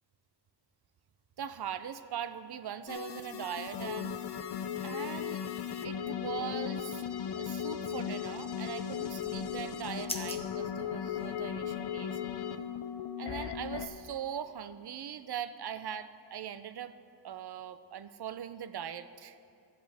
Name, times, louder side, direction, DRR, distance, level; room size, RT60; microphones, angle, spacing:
voice 1, 1.4-4.1 4.8-5.4 5.8-7.0 7.4-12.2 13.2-16.9 17.2-19.4, right 9 dB, 65° right, 12 dB, 0.5 m, -40 dB
sound 1, 2.9-13.9, left 8 dB, 65° left, 0.6 m, -37 dB
sound 2, 9.0-11.8, left 2 dB, 15° left, 0.8 m, -45 dB
14.0 x 7.9 x 3.4 m, 2.4 s
wide cardioid pair, 80°, 43 cm